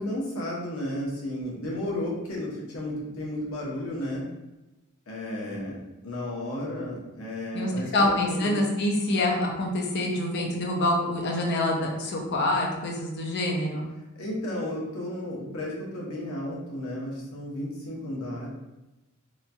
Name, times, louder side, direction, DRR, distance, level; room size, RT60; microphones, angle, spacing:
voice 1, 0.0-4.3 5.1-5.8 6.0-8.6 14.1-18.5, left 1 dB, 80° left, -4 dB, 0.8 m, -33 dB
voice 2, 7.5-13.9, left 1 dB, 55° left, 0 dB, 0.5 m, -26 dB
2.9 x 2.2 x 2.6 m, 1.0 s
head